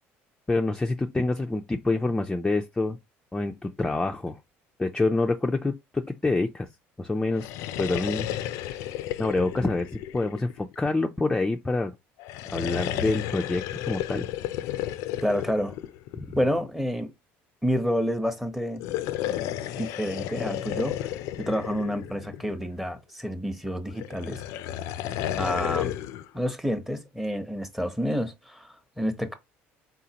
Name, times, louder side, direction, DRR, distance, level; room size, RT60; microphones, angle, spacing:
voice 1, 0.5-3.0 3.3-4.4 4.8-6.7 7.0-7.5 7.8-8.3 8.7-8.9 9.2-11.9 12.5-14.3 16.1-16.3, left 2 dB, 15° left, 0.5 m, -27 dB
sound 1, 7.3-10.9 12.2-16.5 18.7-22.7 24.0-26.3, left 12 dB, 75° left, 0.5 m, -32 dB
voice 2, 15.2-15.8 16.3-17.1 17.6-18.8 19.7-21.1 21.4-24.4 25.4-25.9 26.3-29.3, equal, 5° right, 0.9 m, -29 dB
4.1 x 3.9 x 2.9 m
supercardioid pair, 100°, 5 cm